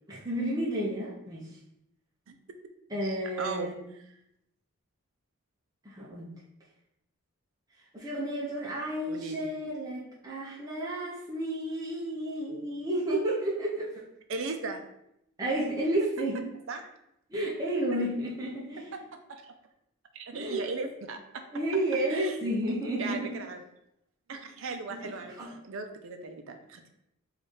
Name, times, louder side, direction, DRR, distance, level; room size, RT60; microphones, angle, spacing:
voice 1, 0.1-1.5 2.9-3.9 5.8-6.3 7.9-14.0 15.4-16.4 17.3-19.0 20.3-20.6 21.5-23.3 24.9-25.5, right 1 dB, 15° right, -6 dB, 0.6 m, -31 dB
voice 2, 2.9-3.7 9.1-9.5 14.3-14.8 16.7-16.9 18.9-19.5 20.1-21.4 22.1-22.4 23.0-23.6 24.3-26.9, right 3 dB, 60° right, 6 dB, 0.4 m, -38 dB
3.1 x 2.4 x 4.2 m, 0.80 s
head